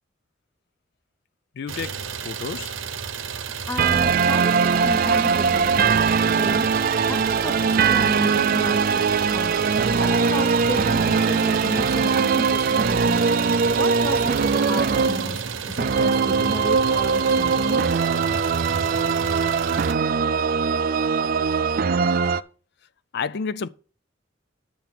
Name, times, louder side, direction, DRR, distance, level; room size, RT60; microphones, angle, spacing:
voice 1, 1.6-2.8 21.3-21.8 23.1-23.7, left 5 dB, 55° left, 0.4 m, -32 dB
Idling, 1.7-19.9, right 6 dB, 90° right, 0.9 m, -32 dB
voice 2, 3.7-6.0 6.4-6.7 7.1-9.1 9.3-9.6 10.0-13.3 13.7-18.0, left 1 dB, 15° left, 0.6 m, -33 dB
sound 1, 3.8-22.4, right 5 dB, 50° right, 0.4 m, -21 dB
9.0 x 7.0 x 5.8 m
head